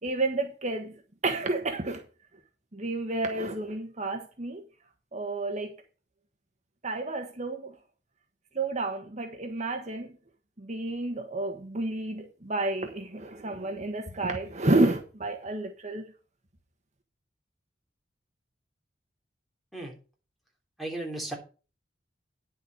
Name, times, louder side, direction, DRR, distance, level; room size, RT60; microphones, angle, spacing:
voice 1, 0.0-0.9 1.2-2.0 2.7-4.6 5.1-5.8 6.8-7.8 8.5-10.2 10.6-16.0, right 2 dB, 40° right, 1.3 m, -30 dB
voice 2, 20.8-21.4, right 2 dB, ahead, 3.2 m, -35 dB
10.0 x 7.0 x 5.3 m
head